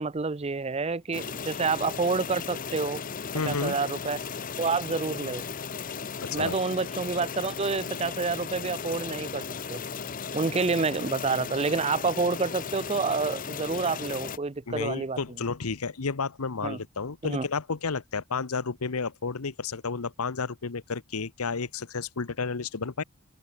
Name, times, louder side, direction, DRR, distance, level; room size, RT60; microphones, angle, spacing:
voice 1, 0.0-3.0 3.5-4.2 4.6-5.4 6.3-9.4 9.7-9.8 10.3-15.2 16.6-16.8 17.2-17.5, right 4 dB, 30° right, 0.5 m, -28 dB
sound 1, 1.1-14.4, left 6 dB, 40° left, 0.7 m, -36 dB
voice 2, 3.3-3.8 6.2-6.6 14.7-23.0, left 4 dB, 80° left, 0.9 m, -31 dB
open air
head